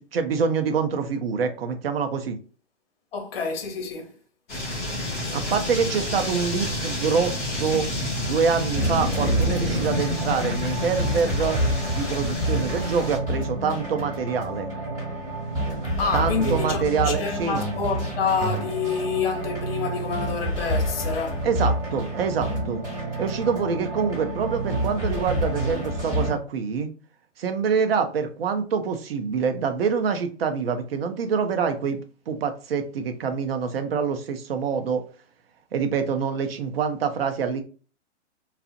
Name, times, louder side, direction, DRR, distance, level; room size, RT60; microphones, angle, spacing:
voice 1, 0.0-2.4 5.3-7.9 8.2-11.6 11.9-14.7 16.1-17.6 21.4-22.8 23.2-26.9 27.4-32.0 32.3-35.0 35.7-37.6, right 6 dB, 55° right, 0.6 m, -26 dB
voice 2, 3.1-4.1 16.0-21.4, left 5 dB, 55° left, 0.8 m, -28 dB
sound 1, 4.5-13.2, left 1 dB, 10° left, 0.4 m, -29 dB
sound 2, 8.7-26.3, right 1 dB, 10° right, 1.4 m, -28 dB
2.7 x 2.0 x 2.5 m
hypercardioid pair, 140°, 36 cm